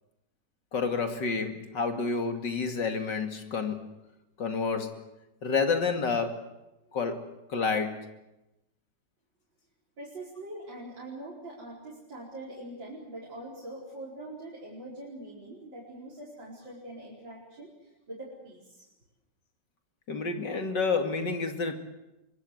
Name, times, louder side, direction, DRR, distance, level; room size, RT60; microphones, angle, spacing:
voice 1, 0.7-3.9 4.4-5.0 5.4-6.4 6.9-7.2 7.5-8.1 20.1-21.8, left 4 dB, 70° left, 5 dB, 3.0 m, -29 dB
voice 2, 10.0-18.9, right 1 dB, 85° right, -6 dB, 5.5 m, -43 dB
24.5 x 24.0 x 8.0 m, 0.95 s
omnidirectional pair, 2.0 m